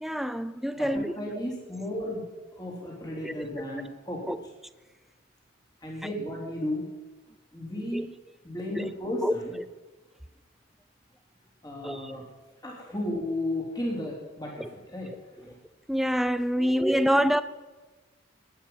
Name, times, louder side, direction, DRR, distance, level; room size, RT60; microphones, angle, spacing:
voice 1, 0.0-1.1 3.2-3.3 4.3-4.4 7.9-8.1 8.8-8.9 9.2-9.3 11.8-12.2 14.6-14.7 15.9-17.4, equal, ahead, 0.5 m, -26 dB
voice 2, 1.1-2.2 2.5-4.4 5.8-6.8 7.5-8.1 8.4-9.6 11.6-12.2 12.6-15.6 16.6-16.8 17.1-17.2, left 1 dB, 20° left, 3.7 m, -34 dB
19.0 x 9.0 x 5.6 m
head